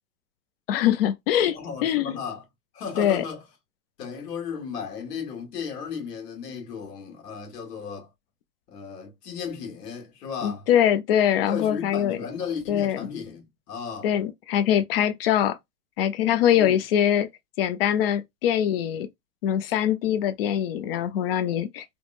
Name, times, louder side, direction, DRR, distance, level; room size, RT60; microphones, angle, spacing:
voice 1, 0.7-2.2 3.0-3.2 10.4-12.2 12.7-13.0 14.0-15.6 16.0-17.3 17.6-19.1 19.4-21.8, left 10 dB, 40° left, 0.4 m, -23 dB
voice 2, 1.5-2.4 2.7-3.4 4.0-8.1 8.7-10.7 11.4-14.1 16.5-16.8, left 6 dB, 75° left, 1.6 m, -35 dB
3.5 x 2.0 x 2.4 m
hypercardioid pair, 130°, 48 cm